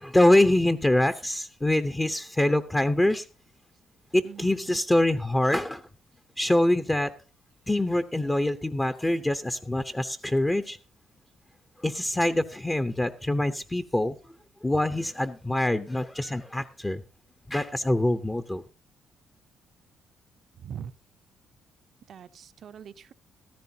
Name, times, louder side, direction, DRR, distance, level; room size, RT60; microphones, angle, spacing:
voice 1, 0.0-3.2 4.1-5.8 6.4-7.1 7.7-10.8 11.8-14.1 14.6-17.0 17.5-18.6, left 1 dB, 15° left, 8 dB, 0.7 m, -24 dB
voice 2, 4.2-4.8 20.6-20.9 22.1-23.1, right 8 dB, 60° right, 13 dB, 0.6 m, -42 dB
14.5 x 13.5 x 2.8 m, 0.32 s
cardioid pair, 90°, 0 cm